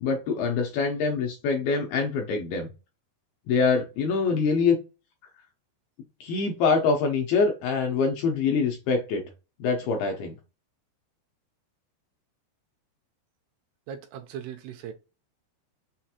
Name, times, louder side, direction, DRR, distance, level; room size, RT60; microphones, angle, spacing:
voice 1, 0.0-2.7 3.5-4.8 6.2-9.2 9.6-10.4, left 4 dB, 80° left, 2.3 m, -24 dB
voice 2, 13.9-14.9, right 8 dB, 80° right, 2.5 m, -38 dB
6.6 x 2.5 x 2.8 m
omnidirectional pair, 5.0 m